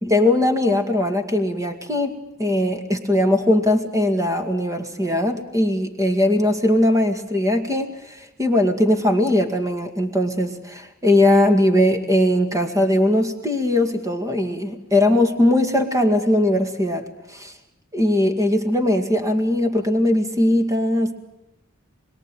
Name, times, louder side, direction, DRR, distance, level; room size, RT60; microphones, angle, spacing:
voice 1, 0.0-17.6 17.9-21.1, left 1 dB, 15° right, 6 dB, 2.1 m, -20 dB
27.0 x 22.5 x 9.2 m, 0.90 s
head